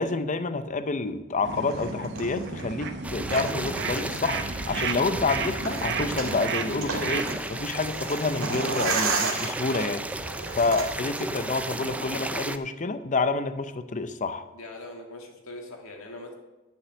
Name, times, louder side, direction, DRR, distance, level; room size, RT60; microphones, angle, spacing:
voice 1, 0.0-10.2 10.6-14.5, left 3 dB, 35° left, 11 dB, 0.6 m, -28 dB
sound 1, 1.4-7.4, right 5 dB, 55° right, 0.9 m, -33 dB
sound 2, 1.5-12.4, right 4 dB, 75° right, 2.0 m, -34 dB
sound 3, 3.0-12.6, right 1 dB, 5° right, 0.4 m, -34 dB
voice 2, 14.5-16.3, left 1 dB, 70° left, 1 dB, 2.1 m, -42 dB
11.0 x 6.7 x 7.0 m, 1.1 s
head